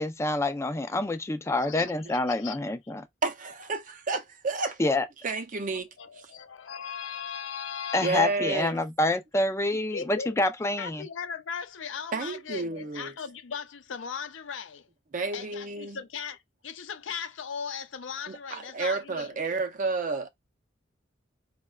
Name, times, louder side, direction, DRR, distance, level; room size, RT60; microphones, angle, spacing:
voice 1, 0.0-3.0 4.8-5.1 7.9-11.1, left 2 dB, 15° left, 0.4 m, -27 dB
voice 2, 1.6-2.6 4.8-5.0 6.0-8.4 9.9-10.3 10.8-14.9 15.3-19.4, left 7 dB, 80° left, 0.5 m, -38 dB
voice 3, 3.2-4.8 5.2-5.9 6.2-6.3 8.0-8.8 12.1-13.1 15.1-16.0 18.3-20.3, right 3 dB, 45° right, 0.5 m, -31 dB
4.5 x 2.1 x 2.2 m
head